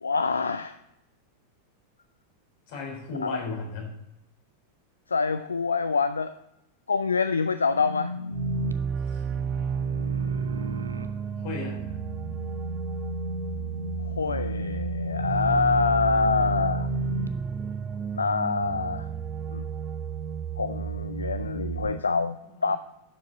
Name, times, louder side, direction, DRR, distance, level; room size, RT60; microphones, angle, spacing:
voice 1, 0.0-0.8 3.2-3.4 5.1-6.3 6.9-8.1 14.0-16.9 18.1-19.1 19.5-19.7 20.6-22.8, left 4 dB, 75° left, 12 dB, 0.3 m, -26 dB
voice 2, 2.7-3.9 9.1-9.2 11.4-12.0 22.0-22.8, left 3 dB, 50° left, 0 dB, 3.8 m, -36 dB
sound 1, 7.6-17.3, left 1 dB, 80° right, 0.6 m, -35 dB
sound 2, 8.3-22.0, right 6 dB, 25° right, 0.5 m, -32 dB
11.5 x 7.5 x 4.0 m, 0.88 s
figure-of-eight pair, 90°, 0 cm